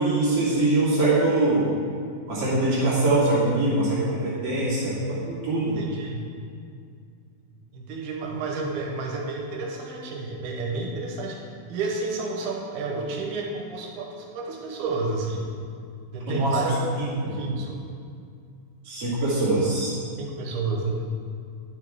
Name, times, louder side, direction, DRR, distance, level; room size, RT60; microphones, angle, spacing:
voice 1, 0.0-1.7 2.3-5.8 16.3-17.4 18.9-20.0, right 2 dB, 40° right, -9 dB, 3.0 m, -23 dB
voice 2, 5.7-6.3 7.7-11.4 11.7-15.5 16.1-16.9 17.2-17.8 20.2-21.0, right 3 dB, 90° right, 0 dB, 3.0 m, -31 dB
11.0 x 6.2 x 3.6 m, 2.3 s
omnidirectional pair, 4.4 m